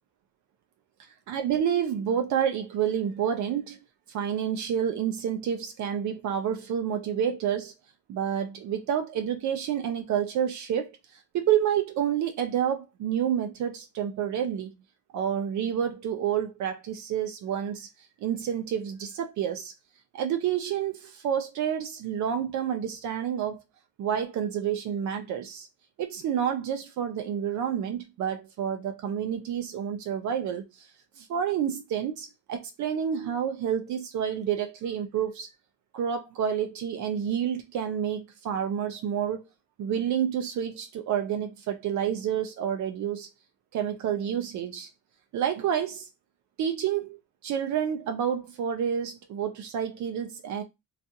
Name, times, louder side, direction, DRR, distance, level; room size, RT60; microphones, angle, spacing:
voice 1, 1.3-3.8 4.1-7.7 8.1-11.0 11.3-14.7 15.1-17.9 18.2-19.7 20.1-23.6 24.0-25.7 26.0-30.6 31.2-35.5 35.9-39.4 39.8-43.3 43.7-44.9 45.3-46.1 46.6-50.6, right 9 dB, 70° right, 0.5 m, -29 dB
2.4 x 2.3 x 2.7 m
cardioid pair, 90°, 30 cm